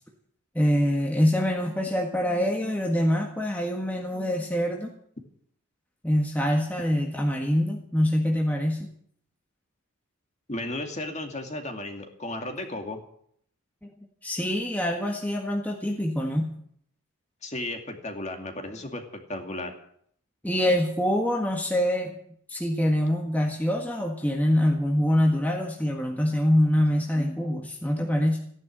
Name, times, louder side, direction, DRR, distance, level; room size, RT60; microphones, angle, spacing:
voice 1, 0.6-4.9 6.0-8.9 14.2-16.5 20.4-22.1 22.5-28.4, equal, 10° left, 0 dB, 1.6 m, -25 dB
voice 2, 10.5-13.0 17.4-19.7, left 1 dB, 35° left, 4 dB, 2.4 m, -34 dB
15.5 x 11.0 x 8.8 m, 0.66 s
head